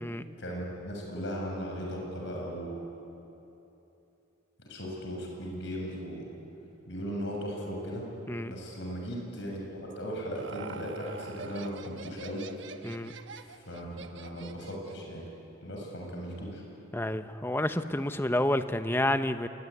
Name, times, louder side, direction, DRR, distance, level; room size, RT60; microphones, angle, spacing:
voice 1, 0.4-2.8 4.6-6.3 6.9-8.1 8.5-12.5 13.4-15.3 15.6-16.6, equal, 65° left, -1 dB, 7.5 m, -37 dB
Laughter, 9.9-15.1, right 4 dB, 65° right, 1.2 m, -45 dB
voice 2, 16.9-19.5, left 1 dB, 10° left, 9 dB, 0.9 m, -29 dB
27.0 x 22.0 x 9.9 m, 2.9 s
head